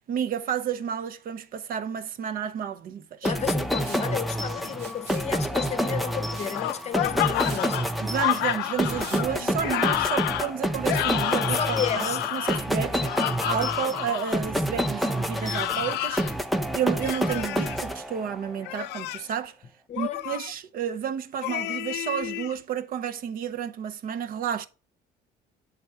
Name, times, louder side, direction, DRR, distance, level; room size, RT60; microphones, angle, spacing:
voice 1, 0.1-3.3 8.0-11.6 11.9-13.0 13.5-16.2 16.7-19.5 20.0-24.7, right 8 dB, 55° right, 0.6 m, -31 dB
voice 2, 3.2-7.8 11.5-12.2 19.9-20.2, left 8 dB, 40° left, 0.7 m, -32 dB
sound 1, 3.2-18.5, equal, ahead, 0.5 m, -28 dB
Liquid, 3.8-4.1 4.7-5.3 6.3-6.6 7.0-7.1 7.3-7.6 9.0-9.2, right 5 dB, 75° right, 1.4 m, -43 dB
sound 2, 6.5-14.4 15.4-16.3 17.0-17.8 18.6-19.3 20.0-20.5 21.4-22.5, left 15 dB, 85° left, 0.4 m, -30 dB
7.6 x 3.6 x 4.4 m
cardioid pair, 110°, 17 cm